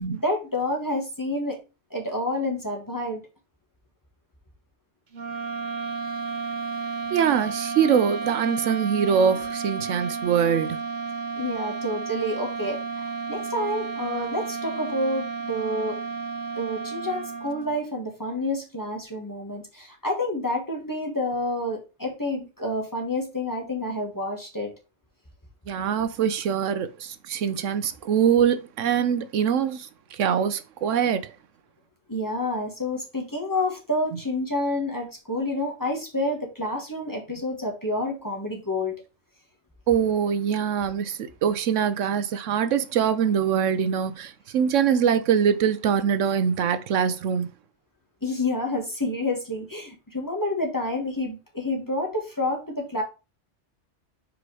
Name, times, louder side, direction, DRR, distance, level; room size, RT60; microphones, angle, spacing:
voice 1, 0.1-1.6 1.9-3.2 11.3-12.8 13.3-16.0 16.5-24.7 32.1-39.0 48.2-53.0, left 1 dB, 15° left, 1.5 m, -28 dB
sound 1, 5.1-17.8, right 4 dB, 40° right, 1.0 m, -32 dB
voice 2, 7.1-10.8 25.7-31.4 39.9-47.5, right 8 dB, 75° right, 1.0 m, -23 dB
5.1 x 4.8 x 4.8 m
omnidirectional pair, 1.3 m